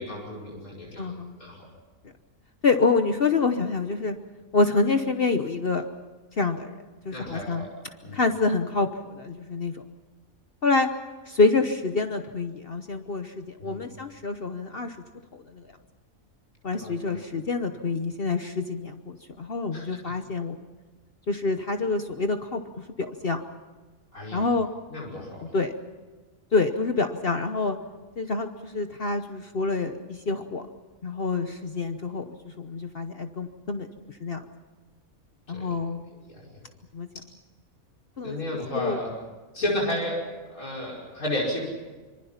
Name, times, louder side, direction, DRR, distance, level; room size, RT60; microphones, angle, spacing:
voice 1, 0.0-1.1 1.4-1.6 7.1-7.7 8.0-8.2 13.6-13.8 16.8-17.2 19.7-19.8 24.1-24.5 24.9-25.5 35.5-35.7 36.1-36.4 38.2-39.1 39.5-40.2 40.5-41.6, left 1 dB, 85° left, -3 dB, 5.9 m, -32 dB
voice 2, 1.0-1.4 2.6-4.2 4.5-5.8 6.4-6.7 7.1-7.7 8.1-8.9 9.2-9.7 10.6-10.9 11.3-15.0 15.3-15.6 16.6-20.6 21.3-22.6 23.0-23.4 24.3-24.7 25.5-25.7 26.5-27.8 28.2-30.6 31.0-32.2 32.6-33.9 34.2-34.4 35.5-36.0 36.9-37.1 38.2-38.4 38.7-39.0, left 3 dB, 45° left, 7 dB, 1.1 m, -26 dB
25.5 x 24.5 x 5.8 m, 1.3 s
omnidirectional pair, 1.5 m